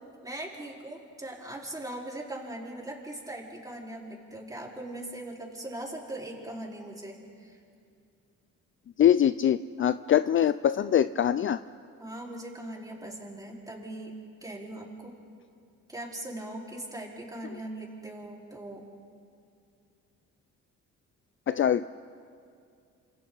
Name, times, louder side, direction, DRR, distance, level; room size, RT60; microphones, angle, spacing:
voice 1, 0.2-7.6 12.0-14.1 14.4-15.2 15.9-18.9, right 1 dB, 10° right, -2 dB, 4.7 m, -40 dB
voice 2, 9.0-11.6 21.5-21.9, left 10 dB, 45° left, 14 dB, 0.5 m, -23 dB
28.0 x 27.0 x 4.1 m, 2.4 s
cardioid pair, 90°, 30 cm